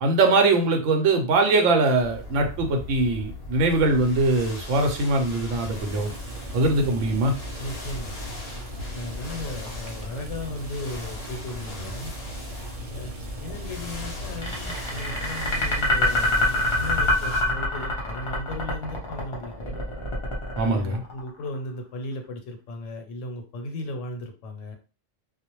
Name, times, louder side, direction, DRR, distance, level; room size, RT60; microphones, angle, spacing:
voice 1, 0.0-6.1 6.5-7.3 20.6-21.0, right 2 dB, 80° right, 4 dB, 1.0 m, -22 dB
sound 1, 2.0-17.4, left 3 dB, 55° left, 0.8 m, -38 dB
Boiling, 5.8-17.6, right 2 dB, 50° right, 0.4 m, -40 dB
voice 2, 7.6-8.1 8.9-12.1 12.9-13.1 13.4-19.8 20.6-24.8, left 1 dB, 90° left, 4 dB, 1.0 m, -36 dB
sound 2, 14.4-21.5, left 1 dB, 35° left, 0.5 m, -25 dB
2.3 x 2.1 x 2.9 m, 0.34 s
omnidirectional pair, 1.3 m